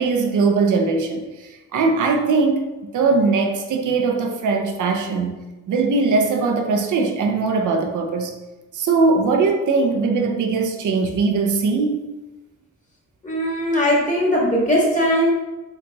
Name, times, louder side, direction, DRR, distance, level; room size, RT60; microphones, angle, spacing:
voice 1, 0.0-2.7 2.9-8.3 8.7-12.0, right 4 dB, 80° right, 4 dB, 0.5 m, -20 dB
voice 2, 13.2-15.3, equal, 25° left, -3 dB, 1.3 m, -19 dB
4.0 x 2.9 x 2.3 m, 1.1 s
cardioid pair, 60°, 30 cm